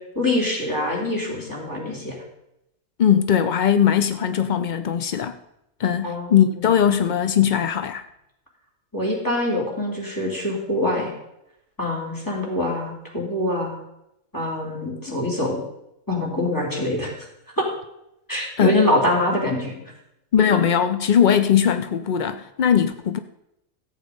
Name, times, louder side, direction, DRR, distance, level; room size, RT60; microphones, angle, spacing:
voice 1, 0.1-2.2 6.0-6.7 8.9-11.1 11.8-13.7 14.3-15.6 16.1-17.1 17.6-17.7 18.3-19.8, left 1 dB, 15° left, 3.4 m, -24 dB
voice 2, 3.0-5.4 5.8-8.0 18.6-18.7 20.3-23.2, left 8 dB, 70° left, 0.4 m, -19 dB
14.0 x 8.3 x 5.3 m
omnidirectional pair, 1.6 m